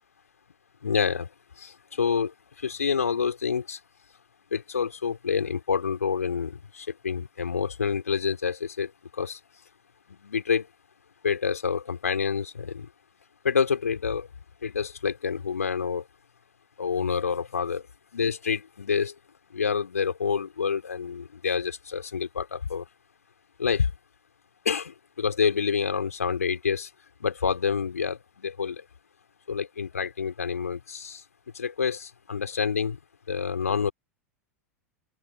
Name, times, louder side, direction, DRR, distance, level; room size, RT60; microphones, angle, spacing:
voice 1, 0.8-1.3 1.6-3.8 4.5-9.4 10.1-10.7 11.2-12.9 13.4-14.3 14.6-16.1 16.8-17.8 18.1-19.1 19.5-22.8 23.6-23.9 24.7-26.9 27.2-28.8 29.5-31.2 31.5-33.0 33.3-33.9, left 6 dB, 75° left, 3.7 m, -28 dB
open air
figure-of-eight pair, 90°, 8 cm